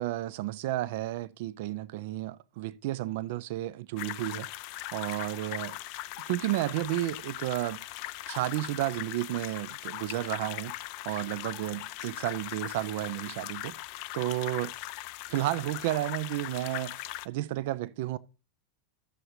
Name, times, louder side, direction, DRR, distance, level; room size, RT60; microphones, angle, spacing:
voice 1, 0.0-4.5 4.9-5.8 6.3-7.8 8.3-10.7 11.0-13.7 14.1-14.7 15.3-18.2, right 16 dB, 50° right, 0.4 m, -32 dB
sound 1, 4.0-17.3, left 17 dB, 45° left, 0.3 m, -40 dB
14.0 x 6.6 x 2.7 m
figure-of-eight pair, 90°, 0 cm